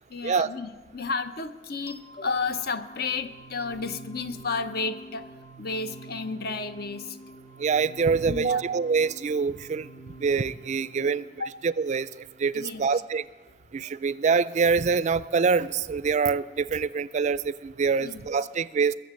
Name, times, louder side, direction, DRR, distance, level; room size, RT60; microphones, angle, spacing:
voice 1, 0.1-5.3 5.6-7.2 8.3-8.6 11.4-11.6 12.5-13.0 18.0-18.2, left 4 dB, 60° left, 10 dB, 0.8 m, -32 dB
sound 1, 1.9-12.8, right 2 dB, 35° left, 0.9 m, -48 dB
voice 2, 7.6-9.9 10.2-11.2 11.6-12.1 12.4-13.2 13.7-19.0, right 5 dB, 40° right, 17 dB, 0.4 m, -25 dB
21.0 x 7.2 x 7.5 m, 1.4 s
head